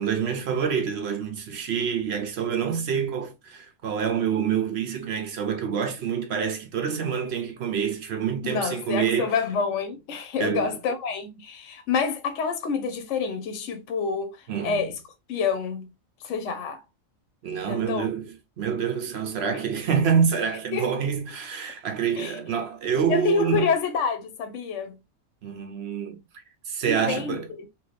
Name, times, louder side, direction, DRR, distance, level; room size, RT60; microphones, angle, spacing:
voice 1, 0.0-9.3 10.4-10.7 14.5-14.8 17.4-18.2 18.6-23.7 25.4-27.5, right 7 dB, 60° right, 0.8 m, -27 dB
voice 2, 8.4-15.0 15.3-15.9 16.2-16.8 17.7-18.1 19.5-19.6 20.7-21.0 22.2-22.4 23.1-25.0 26.9-27.7, left 5 dB, 70° left, 1.0 m, -28 dB
3.0 x 2.6 x 3.2 m
omnidirectional pair, 1.4 m